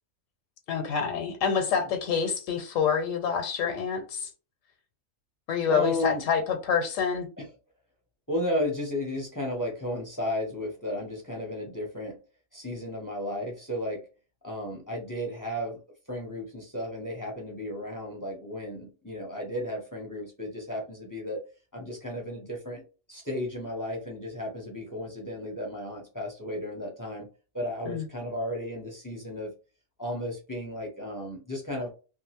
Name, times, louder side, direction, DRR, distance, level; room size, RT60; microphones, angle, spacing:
voice 1, 0.7-4.3 5.5-7.3 27.9-28.0, left 6 dB, 80° left, 1.0 m, -27 dB
voice 2, 5.7-6.2 7.4-7.5 8.3-12.2 12.5-14.0 14.4-15.8 16.1-21.4 21.7-22.8 23.1-27.3 27.5-29.5 30.0-31.9, left 1 dB, 20° left, 0.5 m, -34 dB
2.6 x 2.4 x 2.9 m
omnidirectional pair, 1.4 m